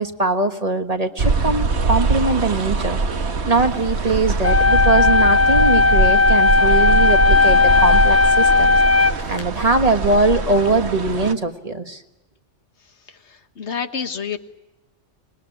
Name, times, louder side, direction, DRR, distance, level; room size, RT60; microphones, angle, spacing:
voice 1, 0.0-12.0, right 3 dB, 30° right, 7 dB, 1.6 m, -21 dB
sound 1, 1.2-11.3, right 4 dB, 65° right, 1.6 m, -22 dB
sound 2, 4.4-9.4, left 4 dB, 15° left, 0.8 m, -15 dB
voice 2, 13.1-14.4, left 6 dB, 70° left, 9 dB, 1.6 m, -29 dB
26.0 x 21.0 x 10.0 m, 1.0 s
omnidirectional pair, 1.2 m